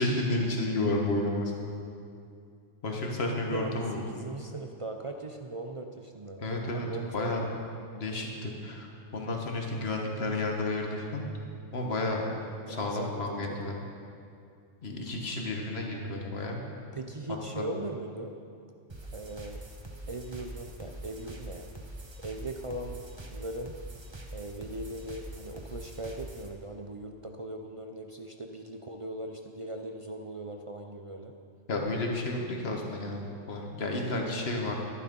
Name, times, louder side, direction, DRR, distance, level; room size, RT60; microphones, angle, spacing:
voice 1, 0.0-1.7 2.8-4.1 6.4-6.9 7.1-7.4 7.9-11.2 11.7-12.2 12.7-13.7 14.8-16.6 17.5-17.7 31.7-34.7, left 2 dB, 55° left, 1 dB, 1.7 m, -31 dB
voice 2, 3.5-6.5 6.7-7.5 12.7-13.6 16.9-18.4 19.1-19.6 20.1-21.7 22.2-23.0 23.3-23.8 24.3-31.3, right 1 dB, 40° right, 4 dB, 0.5 m, -39 dB
sound 1, 18.9-26.5, right 1 dB, 25° right, 1.0 m, -44 dB
11.5 x 11.5 x 5.4 m, 2.5 s
omnidirectional pair, 1.3 m